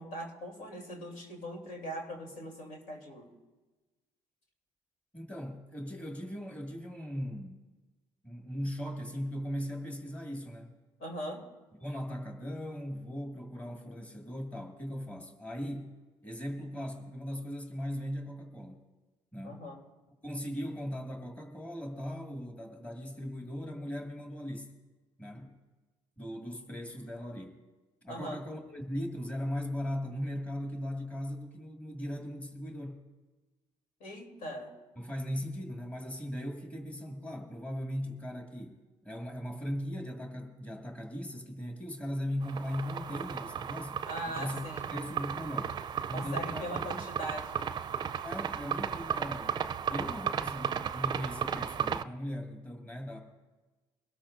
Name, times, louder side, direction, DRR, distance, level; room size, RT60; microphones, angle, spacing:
voice 1, 0.0-3.3 11.0-11.4 19.4-19.8 28.1-28.4 34.0-34.7 44.0-44.9 46.1-47.8, equal, 85° left, 0 dB, 3.3 m, -40 dB
voice 2, 5.1-7.6 8.2-10.8 11.8-15.9 16.2-18.8 19.3-19.7 20.2-24.7 25.2-25.5 26.2-27.6 28.0-33.0 35.0-44.0 44.3-44.6 44.9-45.8 46.1-46.8 48.2-53.2, equal, 10° left, 2 dB, 2.0 m, -38 dB
sound 1, 42.4-52.0, right 8 dB, 40° right, 0.5 m, -35 dB
22.5 x 13.0 x 2.6 m, 1.2 s
cardioid pair, 95°, 11 cm